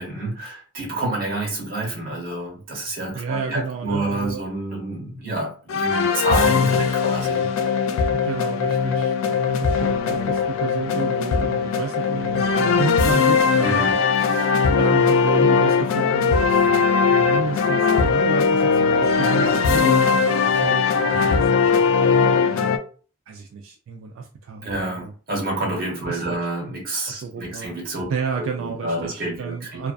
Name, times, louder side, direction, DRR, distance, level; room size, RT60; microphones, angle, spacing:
voice 1, 0.0-7.5 13.6-14.0 19.2-19.6 21.1-21.4 24.6-28.1 28.6-29.8, right 1 dB, 45° right, -1 dB, 1.0 m, -28 dB
voice 2, 3.1-4.4 8.1-14.5 14.8-22.7 23.3-25.1 26.1-26.4 27.1-27.7 28.1-29.9, right 5 dB, 75° right, 3 dB, 0.3 m, -31 dB
sound 1, 5.7-22.8, left 5 dB, 85° left, 0.3 m, -19 dB
2.4 x 2.3 x 2.2 m, 0.39 s
head